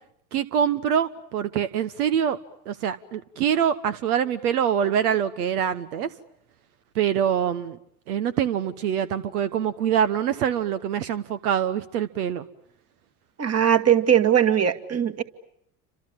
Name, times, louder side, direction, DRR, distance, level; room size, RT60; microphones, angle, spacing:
voice 1, 0.3-2.4 2.7-6.1 6.9-7.8 8.1-12.4, right 9 dB, 75° right, 13 dB, 1.2 m, -24 dB
voice 2, 13.4-15.2, right 9 dB, 35° right, 11 dB, 2.2 m, -20 dB
29.5 x 26.5 x 7.2 m, 0.76 s
hypercardioid pair, 70°, 45 cm